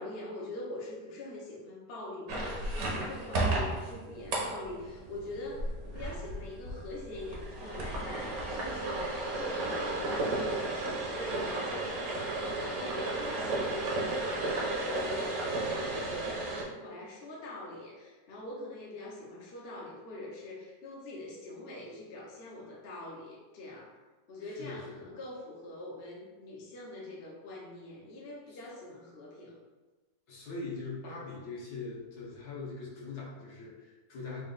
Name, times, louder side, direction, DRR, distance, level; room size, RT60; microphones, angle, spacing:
voice 1, 0.0-24.0 24.3-29.6, left 2 dB, 50° left, -4 dB, 0.8 m, -43 dB
sound 1, 2.3-16.6, right 2 dB, 65° right, 1.2 m, -34 dB
voice 2, 24.4-25.1 28.5-28.6 30.3-34.4, left 3 dB, 65° left, -5 dB, 1.5 m, -42 dB
4.1 x 2.4 x 3.9 m, 1.2 s
omnidirectional pair, 1.9 m